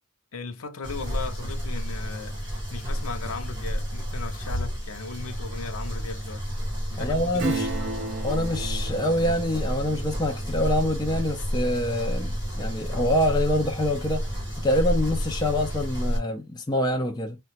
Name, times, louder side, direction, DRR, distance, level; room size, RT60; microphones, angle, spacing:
voice 1, 0.3-6.6 6.9-7.9, left 4 dB, 70° left, 0.5 m, -37 dB
sound 1, 0.8-16.2, equal, 20° right, 1.4 m, -30 dB
voice 2, 7.0-7.7 8.2-14.3 14.6-17.4, left 1 dB, 20° left, 0.4 m, -26 dB
Acoustic guitar / Strum, 7.4-13.6 14.0-14.1, right 2 dB, 55° right, 0.7 m, -36 dB
3.7 x 2.2 x 2.8 m
head